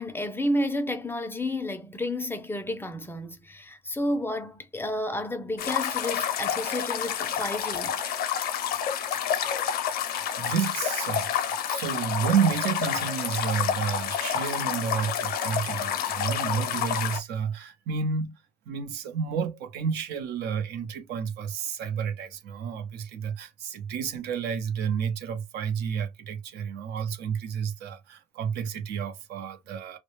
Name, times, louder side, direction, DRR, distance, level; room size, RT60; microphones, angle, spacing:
voice 1, 0.0-8.0, left 1 dB, 15° left, 0.4 m, -31 dB
sound 1, 5.6-17.2, left 9 dB, 65° left, 0.6 m, -29 dB
voice 2, 10.4-18.4 18.7-30.0, right 7 dB, 80° right, 0.6 m, -30 dB
2.1 x 2.0 x 2.9 m
cardioid pair, 110°, 17 cm